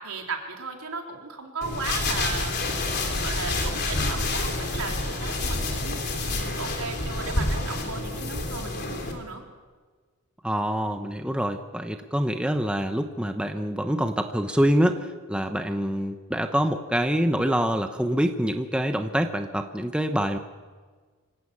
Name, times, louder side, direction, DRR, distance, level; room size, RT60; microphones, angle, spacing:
voice 1, 0.0-2.5 2.9-6.0 6.2-9.4, right 4 dB, 80° right, 2 dB, 3.8 m, -36 dB
sound 1, 1.6-9.1, left 2 dB, 45° left, 3.8 m, -28 dB
voice 2, 10.4-20.4, equal, 5° right, 6 dB, 1.0 m, -25 dB
25.5 x 16.0 x 8.7 m, 1.5 s
head